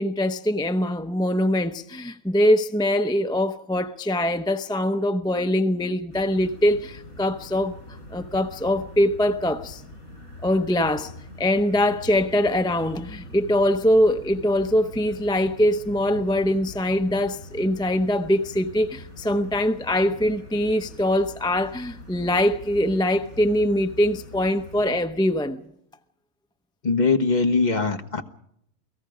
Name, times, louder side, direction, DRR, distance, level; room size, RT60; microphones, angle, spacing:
voice 1, 0.0-7.7 8.1-9.8 10.4-11.1 11.4-25.6, left 1 dB, 5° left, 0.5 m, -23 dB
sound 1, 6.1-25.0, left 1 dB, 85° left, 5.8 m, -43 dB
voice 2, 26.8-28.2, left 4 dB, 35° left, 1.3 m, -21 dB
29.0 x 18.0 x 5.0 m
omnidirectional pair, 1.4 m